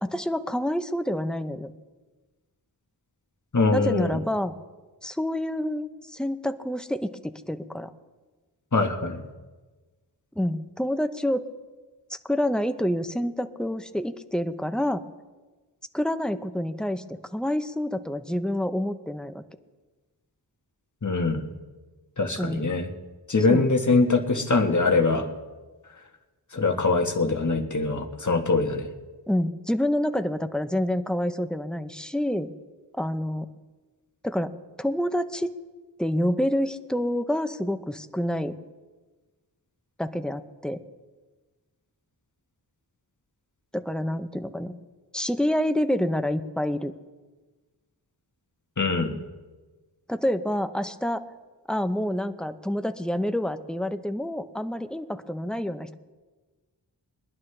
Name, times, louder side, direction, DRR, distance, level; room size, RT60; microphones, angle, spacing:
voice 1, 0.0-1.7 3.7-4.5 5.0-7.9 10.4-11.5 12.1-15.0 15.9-19.4 22.4-22.7 23.5-23.7 29.3-32.5 33.0-33.5 34.2-34.5 34.8-35.6 36.0-38.6 40.0-40.8 43.7-44.8 45.1-46.9 50.1-51.2 51.7-56.0, left 1 dB, ahead, 9 dB, 0.7 m, -28 dB
voice 2, 3.5-4.2 8.7-9.2 21.0-21.5 22.2-22.9 23.3-25.3 26.5-28.9 48.8-49.1, left 3 dB, 45° left, 3 dB, 1.4 m, -23 dB
22.0 x 11.0 x 3.3 m, 1.3 s
wide cardioid pair, 55°, 42 cm